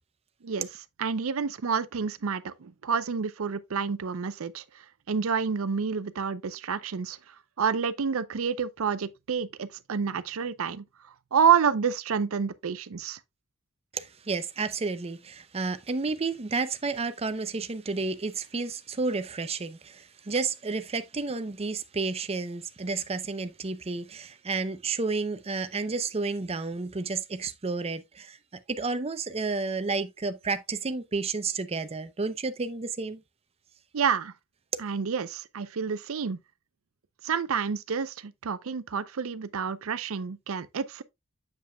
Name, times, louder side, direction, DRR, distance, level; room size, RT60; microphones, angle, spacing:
voice 1, 1.0-4.6 5.1-7.2 7.6-10.8 11.3-13.2 33.9-34.3 34.8-36.4 37.2-41.0, right 6 dB, 75° right, 0.5 m, -28 dB
voice 2, 13.9-28.4 28.7-33.2, right 4 dB, 30° right, 0.6 m, -31 dB
7.5 x 7.3 x 2.2 m
head